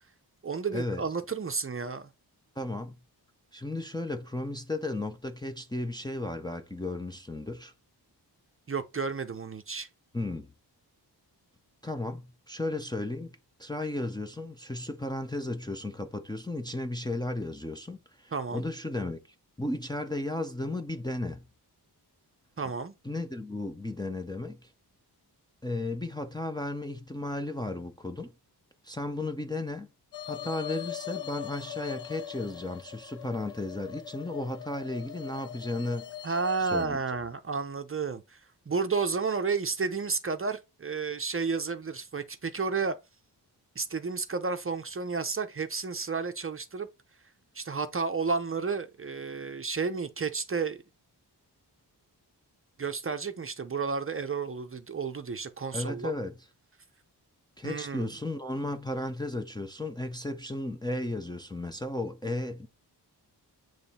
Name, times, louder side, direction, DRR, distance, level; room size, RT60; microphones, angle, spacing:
voice 1, 0.4-2.1 8.7-9.9 18.3-18.6 22.6-22.9 36.2-38.4 38.7-43.0 43.8-46.9 47.5-50.8 52.8-56.1 57.6-58.1, right 4 dB, 30° right, 0.6 m, -31 dB
voice 2, 2.6-2.9 3.5-7.7 10.1-10.5 11.8-13.3 13.6-19.2 19.6-21.4 23.0-24.7 25.6-28.3 28.8-29.9 30.3-36.1 36.6-37.0 55.7-56.3 57.6-62.7, left 2 dB, 10° left, 0.5 m, -34 dB
sound 1, 30.1-36.9, left 11 dB, 75° left, 0.9 m, -41 dB
8.8 x 3.1 x 4.2 m
wide cardioid pair, 160°, 41 cm